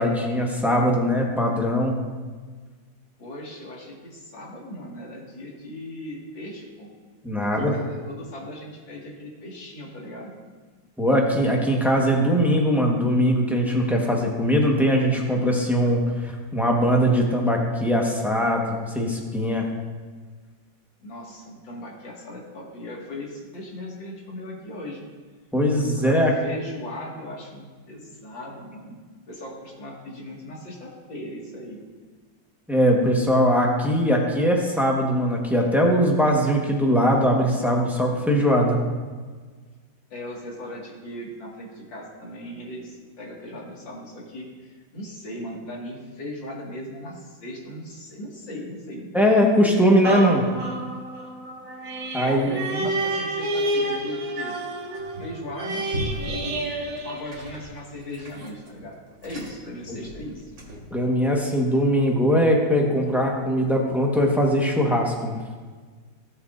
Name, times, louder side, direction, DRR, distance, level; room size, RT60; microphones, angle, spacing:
voice 1, 0.0-2.0 7.2-7.7 11.0-19.7 25.5-26.3 32.7-38.8 49.1-50.4 52.1-52.5 59.9-60.0 60.9-65.4, equal, ahead, -1 dB, 1.0 m, -21 dB
voice 2, 3.2-6.9 7.4-10.3 21.0-25.0 25.9-31.8 40.1-49.1 52.2-54.5 55.2-55.9 56.4-56.6 57.0-60.5, left 1 dB, 85° left, -4 dB, 2.8 m, -38 dB
sound 1, 50.0-57.9 58.4-58.5, right 1 dB, 55° right, 1.4 m, -30 dB
sound 2, 54.9-55.5 55.9-61.0, equal, 75° right, 2.8 m, -38 dB
16.0 x 7.1 x 2.6 m, 1.5 s
omnidirectional pair, 2.0 m